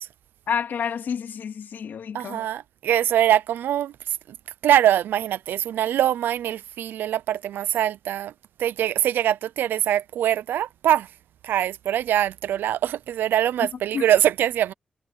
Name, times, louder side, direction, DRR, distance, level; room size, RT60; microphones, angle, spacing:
voice 1, 0.5-2.4 13.9-14.0, left 7 dB, 75° left, 2.9 m, -29 dB
voice 2, 2.1-4.0 4.3-4.4 4.6-8.3 8.6-11.1 11.4-14.7, right 11 dB, 85° right, 0.6 m, -23 dB
supercardioid pair, 45°, 3 cm